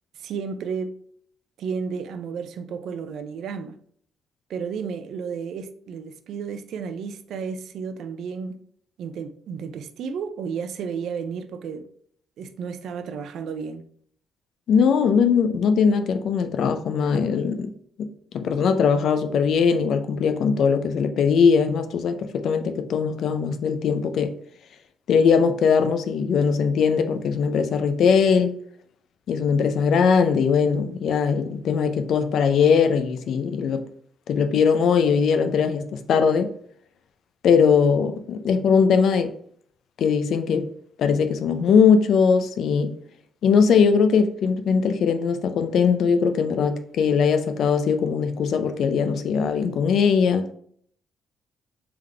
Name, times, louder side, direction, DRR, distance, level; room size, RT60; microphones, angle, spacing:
voice 1, 0.1-0.9 1.6-3.8 4.5-8.6 9.0-11.8 12.4-13.8, right 6 dB, 75° right, 0.4 m, -32 dB
voice 2, 14.7-17.7 18.0-18.1 18.3-24.3 25.1-28.5 29.3-33.8 34.3-36.5 37.4-39.3 40.0-40.7 41.0-42.9 43.4-50.5, left 6 dB, 70° left, 0.5 m, -20 dB
3.6 x 3.5 x 3.2 m
cardioid pair, 90°, 0 cm